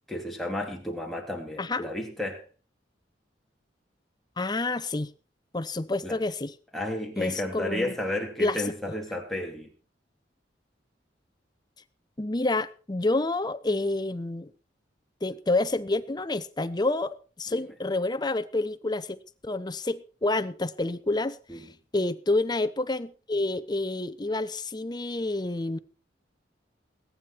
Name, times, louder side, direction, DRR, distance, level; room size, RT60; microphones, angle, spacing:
voice 1, 0.1-2.4 6.0-6.2 6.7-9.7 17.5-17.6 21.5-21.7, left 1 dB, ahead, 3.0 m, -32 dB
voice 2, 1.6-1.9 4.4-5.1 5.5-6.5 7.2-7.9 8.4-8.6 12.2-14.5 15.2-19.2 19.4-21.7 21.9-25.8, left 2 dB, 25° left, 0.7 m, -28 dB
21.0 x 9.6 x 4.5 m
head